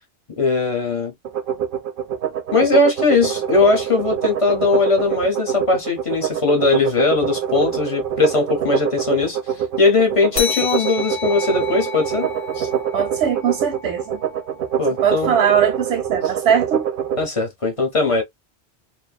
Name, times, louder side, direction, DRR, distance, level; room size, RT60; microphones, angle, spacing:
voice 1, 0.4-1.1 2.5-9.4 9.8-12.3 12.6-12.7 14.8-15.3 17.2-18.2, left 3 dB, 35° left, 0.7 m, -19 dB
sound 1, 1.2-17.2, right 9 dB, 60° right, 0.6 m, -25 dB
sound 2, 10.4-15.3, left 6 dB, 70° left, 0.8 m, -31 dB
voice 2, 12.9-14.2 15.0-16.9, right 8 dB, 85° right, 0.9 m, -20 dB
2.6 x 2.2 x 2.2 m
omnidirectional pair, 1.1 m